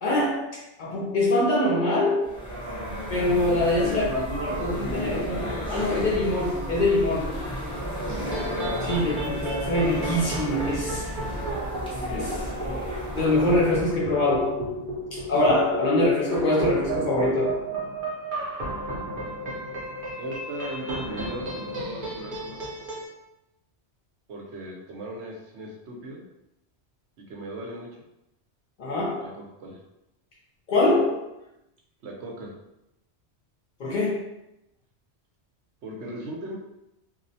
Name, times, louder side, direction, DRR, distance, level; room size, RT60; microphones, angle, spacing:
voice 1, 0.0-2.4 3.1-7.4 8.8-11.1 12.1-12.4 13.1-14.7 15.1-17.6 28.8-29.3 30.7-31.3 33.8-34.2, left 1 dB, 55° left, -4 dB, 0.6 m, -24 dB
sound 1, 2.2-13.8, equal, 5° left, 0.4 m, -33 dB
voice 2, 3.8-5.5 8.0-8.3 8.9-9.1 20.2-22.6 24.3-26.2 27.2-27.9 29.2-29.8 32.0-32.5 35.8-36.6, right 1 dB, 80° right, -1 dB, 0.9 m, -37 dB
sound 2, 8.1-23.1, right 1 dB, 55° right, 0.7 m, -34 dB
2.3 x 2.0 x 2.6 m, 0.88 s
omnidirectional pair, 1.1 m